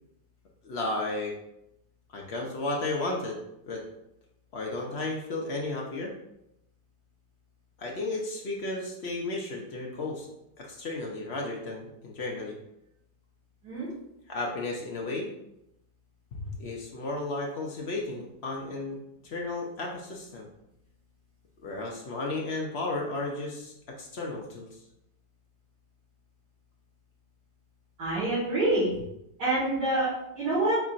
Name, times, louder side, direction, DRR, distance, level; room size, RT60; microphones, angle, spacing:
voice 1, 0.6-1.4 2.1-3.4 3.7-3.8 4.5-6.1 7.8-10.3 10.6-12.6 14.3-15.3 16.3-20.5 21.6-24.7, left 2 dB, 60° left, -1 dB, 0.7 m, -33 dB
voice 2, 28.0-28.9 29.4-30.8, right 2 dB, 75° right, -11 dB, 2.2 m, -26 dB
4.5 x 4.1 x 2.5 m, 0.82 s
omnidirectional pair, 1.8 m